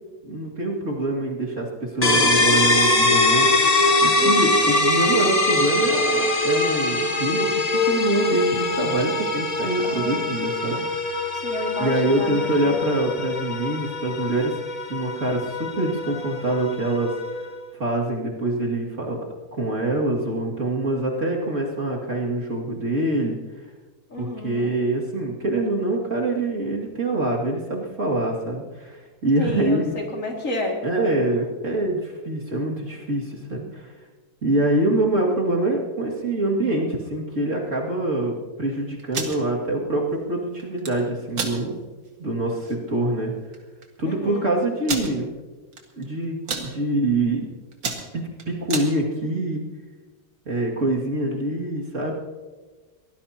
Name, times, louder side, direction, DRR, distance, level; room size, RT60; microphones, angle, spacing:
voice 1, 0.2-1.7 1.9-3.5 4.0-10.8 11.8-14.5 14.9-17.1 17.7-19.2 19.5-23.4 24.2-29.9 30.8-33.9 34.4-41.7 42.2-43.3 44.0-45.3 46.0-47.5 48.1-49.6 50.5-52.1, right 2 dB, 40° right, -3 dB, 2.6 m, -25 dB
sound 1, 2.0-17.6, left 2 dB, 25° left, 1.1 m, -22 dB
voice 2, 4.2-4.7 9.8-10.2 11.3-12.7 24.1-24.7 29.4-30.8 44.0-44.5, left 1 dB, 45° left, 0 dB, 2.7 m, -31 dB
sound 2, 39.0-39.4 40.6-40.9 41.3-41.6 42.1-42.2 42.5-42.7 43.5-43.6 43.8-43.9 44.8-45.1 45.7-46.0 46.3-46.7 47.2-47.4 47.7-48.9, right 4 dB, 85° right, 2.6 m, -29 dB
23.5 x 18.0 x 2.9 m, 1.3 s
omnidirectional pair, 2.0 m